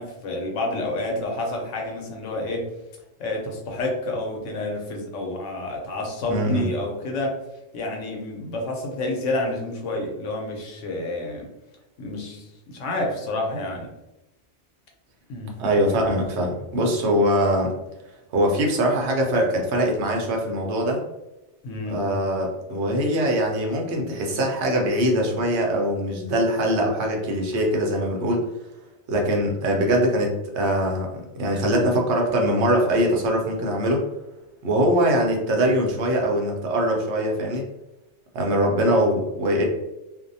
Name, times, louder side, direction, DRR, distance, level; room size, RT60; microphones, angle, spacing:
voice 1, 0.0-2.7 3.2-7.4 7.7-11.4 12.0-13.9 15.3-15.6 21.6-22.1, left 1 dB, 85° left, 1 dB, 1.0 m, -29 dB
voice 2, 6.3-6.7 15.6-17.7 18.3-21.0 21.9-28.5 29.1-34.0 34.6-37.6 38.3-39.6, equal, 70° right, 0 dB, 0.9 m, -22 dB
2.6 x 2.1 x 2.6 m, 0.95 s
omnidirectional pair, 1.2 m